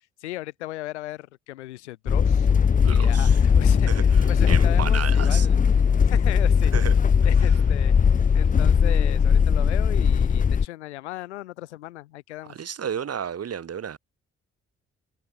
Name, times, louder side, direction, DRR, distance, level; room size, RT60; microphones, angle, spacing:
voice 1, 0.2-2.5 2.9-5.6 6.0-6.7 7.2-12.6, left 16 dB, 85° left, 1.4 m, -37 dB
sound 1, 2.1-10.7, left 6 dB, 25° left, 0.6 m, -19 dB
voice 2, 2.8-3.4 3.9-5.5 6.7-6.9 12.5-14.0, right 8 dB, 45° right, 1.5 m, -33 dB
hypercardioid pair, 40°, 34 cm